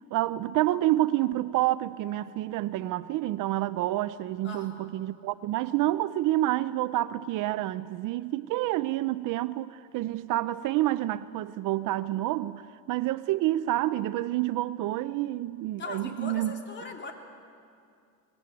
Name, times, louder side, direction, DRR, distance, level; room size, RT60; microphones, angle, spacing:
voice 1, 0.1-12.6 12.9-16.5, right 15 dB, 55° right, 0.6 m, -28 dB
voice 2, 4.4-4.9 15.8-17.1, left 3 dB, 30° left, 3.1 m, -40 dB
24.0 x 20.0 x 9.1 m
cardioid pair, 125°, 40 cm